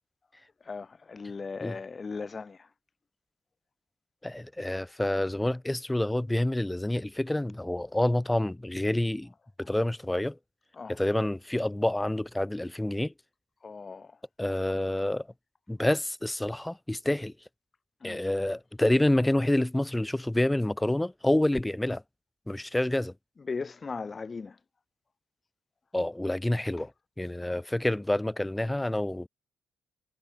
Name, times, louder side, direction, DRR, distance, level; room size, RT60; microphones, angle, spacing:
voice 1, 0.6-2.7 10.7-11.0 13.6-14.2 18.0-18.2 23.4-24.6 26.8-26.9, left 4 dB, 35° left, 5.8 m, -38 dB
voice 2, 4.2-9.3 9.6-10.4 10.9-13.1 14.4-15.3 15.7-17.3 18.0-22.0 22.5-23.1 25.9-26.9 27.2-29.3, left 1 dB, 10° left, 4.4 m, -28 dB
cardioid pair, 85°, 0 cm